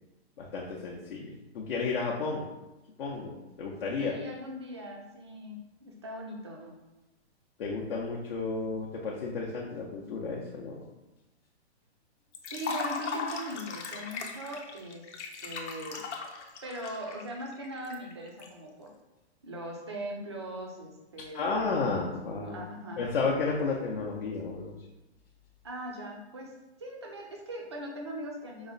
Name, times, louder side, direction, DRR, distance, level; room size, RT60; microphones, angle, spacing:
voice 1, 0.4-2.4 3.0-4.1 7.6-10.8 21.3-22.6 23.0-24.7, left 4 dB, 55° left, -3 dB, 0.6 m, -32 dB
voice 2, 4.0-6.7 12.5-15.1 15.4-16.0 16.6-18.9 19.4-21.6 22.3-23.0 25.6-26.5 26.8-28.7, equal, 25° right, 0 dB, 0.4 m, -40 dB
Liquid, 12.3-18.5, left 4 dB, 85° left, 0.8 m, -38 dB
4.8 x 2.1 x 3.8 m, 1.0 s
hypercardioid pair, 170°, 34 cm